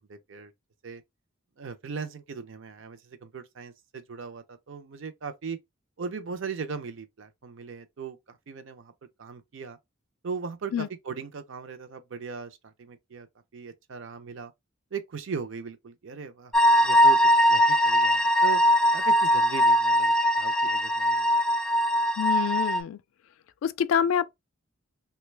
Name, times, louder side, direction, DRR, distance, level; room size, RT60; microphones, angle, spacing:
voice 1, 0.1-0.5 0.8-1.0 1.6-5.6 6.0-8.9 9.2-9.8 10.2-13.3 13.5-14.5 14.9-16.5 16.8-17.2 17.5-18.6 18.9-21.3, right 5 dB, 65° right, 0.5 m, -38 dB
sound 1, 16.5-22.8, equal, 5° left, 0.4 m, -21 dB
voice 2, 22.2-23.0 23.6-24.2, left 8 dB, 80° left, 0.3 m, -26 dB
3.0 x 2.2 x 3.2 m
head